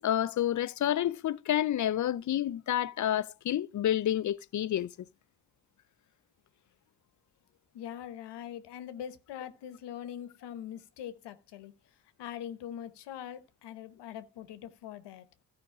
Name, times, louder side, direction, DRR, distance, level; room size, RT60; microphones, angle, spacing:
voice 1, 0.0-4.9, left 11 dB, 45° left, 0.5 m, -29 dB
voice 2, 7.7-11.7 12.2-15.3, left 10 dB, 85° left, 1.0 m, -42 dB
13.5 x 5.2 x 4.9 m
cardioid pair, 80°, 40 cm